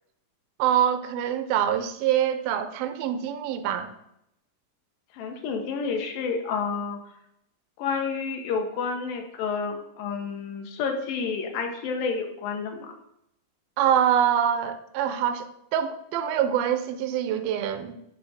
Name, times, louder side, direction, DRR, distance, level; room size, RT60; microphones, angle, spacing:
voice 1, 0.6-3.9 13.8-18.0, right 10 dB, 85° right, 10 dB, 2.4 m, -25 dB
voice 2, 5.1-7.0 7.8-12.9, left 5 dB, 80° left, 4 dB, 2.5 m, -30 dB
9.2 x 3.3 x 5.5 m, 0.80 s
omnidirectional pair, 4.1 m